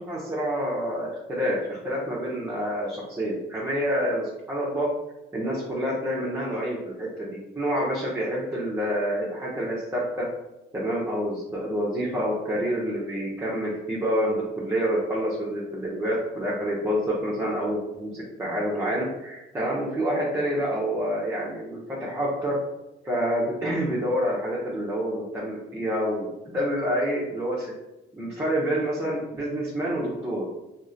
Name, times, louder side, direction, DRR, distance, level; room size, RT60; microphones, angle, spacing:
voice 1, 0.0-4.9 5.3-10.3 10.7-22.6 23.0-27.7 28.1-30.5, equal, 15° right, -6 dB, 0.7 m, -28 dB
3.0 x 2.8 x 2.6 m, 0.96 s
cardioid pair, 90°, 20 cm